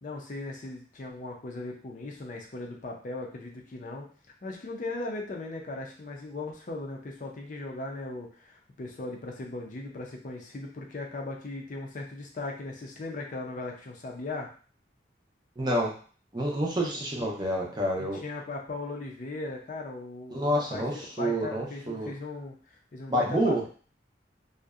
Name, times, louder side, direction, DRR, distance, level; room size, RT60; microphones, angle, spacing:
voice 1, 0.0-4.1 4.4-14.5 17.2-17.3 18.1-20.9 21.2-23.7, left 2 dB, 45° left, 0 dB, 0.4 m, -38 dB
voice 2, 15.6-15.9 16.3-18.2 20.3-22.1 23.1-23.6, equal, 25° right, -1 dB, 0.5 m, -28 dB
2.6 x 2.0 x 2.3 m, 0.41 s
head